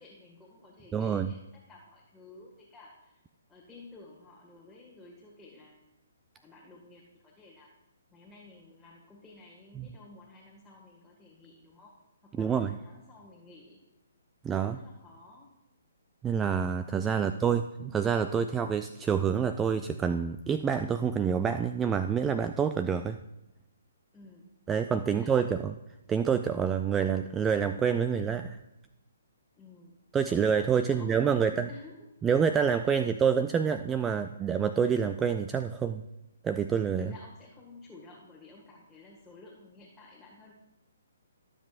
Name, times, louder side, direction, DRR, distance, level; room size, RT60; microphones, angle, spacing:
voice 1, 0.0-3.2 3.5-5.8 6.4-7.7 8.1-12.0 12.2-13.8 14.5-15.5 24.1-24.6 25.0-25.3 29.6-30.0 30.7-32.0 32.8-33.0 37.0-40.5, left 3 dB, 5° left, -5 dB, 1.8 m, -53 dB
voice 2, 0.9-1.3 9.8-9.9 12.3-12.8 14.4-14.8 16.2-23.2 24.7-25.7 26.1-28.6 30.1-31.7 32.2-36.0 36.4-37.1, right 7 dB, 15° right, 9 dB, 0.3 m, -27 dB
18.0 x 7.5 x 2.5 m, 0.96 s
figure-of-eight pair, 135°, 0 cm